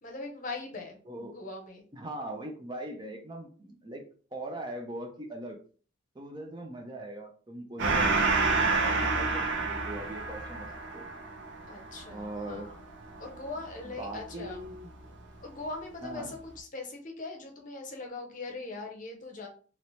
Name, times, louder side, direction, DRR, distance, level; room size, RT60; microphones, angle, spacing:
voice 1, 0.0-1.8 11.7-12.8 13.2-14.6 15.4-19.5, left 3 dB, 40° left, 2 dB, 0.7 m, -41 dB
voice 2, 1.1-1.4 1.9-4.0 4.3-5.6 6.1-8.2 8.5-10.7 10.9-11.1 12.1-12.7 14.0-14.9 16.0-16.3, right 1 dB, 20° right, 3 dB, 0.5 m, -40 dB
Gong, 7.8-14.8, right 3 dB, 65° right, 0.7 m, -29 dB
2.9 x 2.9 x 3.1 m, 0.41 s
head